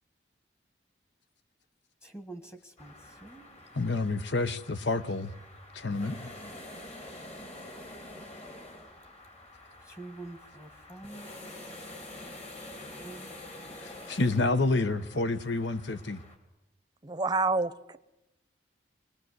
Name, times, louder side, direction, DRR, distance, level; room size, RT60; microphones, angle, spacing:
voice 1, 2.0-3.5 9.8-11.4 13.0-13.4, right 2 dB, 15° left, 1.6 m, -46 dB
sound 1, 2.8-16.4, left 1 dB, 35° left, 3.3 m, -47 dB
voice 2, 3.7-5.3 5.7-6.3 13.8-16.2, left 3 dB, 70° left, 1.0 m, -29 dB
voice 3, 17.0-18.0, right 3 dB, 20° right, 0.8 m, -28 dB
25.5 x 19.5 x 8.0 m
head